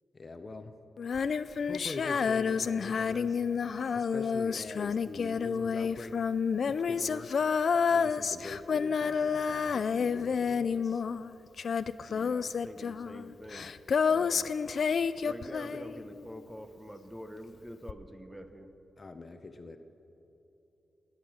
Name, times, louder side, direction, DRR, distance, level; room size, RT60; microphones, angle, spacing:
voice 1, 0.1-0.7 1.6-3.4 3.9-6.2 6.6-7.4 7.9-11.0 19.0-19.8, left 3 dB, 35° left, 7 dB, 0.7 m, -43 dB
Female singing, 1.0-16.3 17.9-18.0, left 6 dB, 60° left, 0.3 m, -29 dB
voice 2, 12.1-13.7 14.0-14.5 15.2-18.7, equal, 5° right, 8 dB, 0.8 m, -46 dB
17.0 x 10.5 x 6.2 m, 3.0 s
wide cardioid pair, 125°, 0 cm